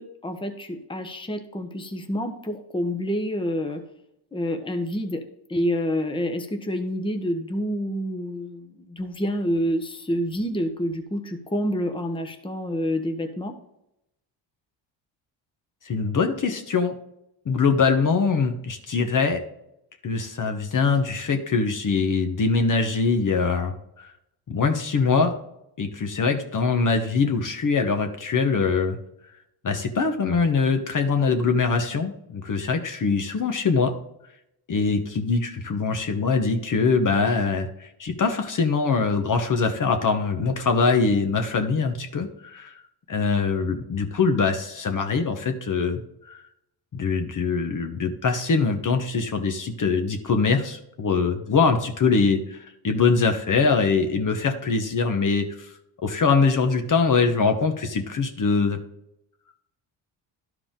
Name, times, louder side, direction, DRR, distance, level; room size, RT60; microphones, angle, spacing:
voice 1, 0.0-3.8 4.3-5.2 5.5-13.5, equal, 10° left, 5 dB, 1.0 m, -28 dB
voice 2, 15.8-16.9 17.4-19.4 20.0-24.1 24.5-25.3 25.8-29.0 29.6-33.9 34.7-42.8 43.1-46.0 46.3-46.4 46.9-55.7 56.0-58.8, left 4 dB, 40° left, 5 dB, 1.1 m, -23 dB
11.5 x 4.9 x 3.7 m, 0.80 s
cardioid pair, 80°, 47 cm